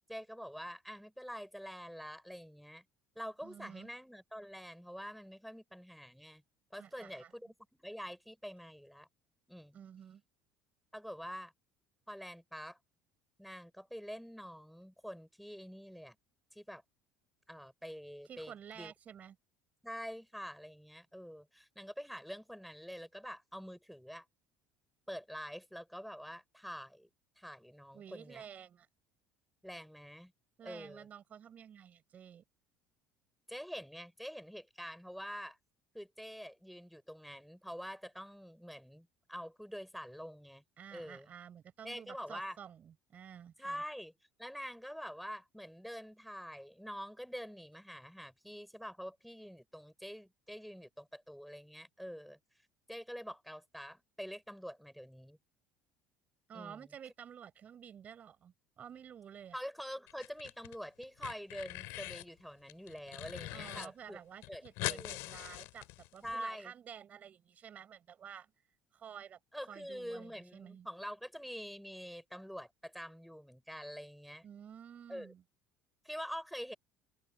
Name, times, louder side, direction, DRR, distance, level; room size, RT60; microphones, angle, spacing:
voice 1, 0.1-2.8 3.1-6.4 6.7-9.1 9.5-9.8 10.9-11.5 12.1-12.8 13.4-16.1 16.5-16.8 17.5-18.9 19.8-24.2 25.1-27.1 27.4-28.4 29.6-30.3 30.6-31.1 33.5-35.6 35.9-40.6 40.9-41.3 41.8-42.6 43.6-44.1 44.4-52.4 52.9-55.4 56.5-56.9 59.5-64.2 64.5-65.2 66.2-66.7 69.5-74.5 75.1-75.3 76.0-76.7, equal, ahead, 6.4 m, -46 dB
voice 2, 3.4-3.9 6.8-7.3 9.7-10.2 18.2-19.4 27.9-28.9 30.6-32.4 40.8-43.8 56.5-59.6 63.5-68.5 68.9-69.4 69.7-70.9 74.4-75.4, right 8 dB, 35° right, 6.3 m, -51 dB
sound 1, 60.1-60.8 61.0-62.3 62.7-63.9 64.1-64.2 64.4-66.3, left 23 dB, 80° left, 3.7 m, -42 dB
cardioid pair, 150°, 5 cm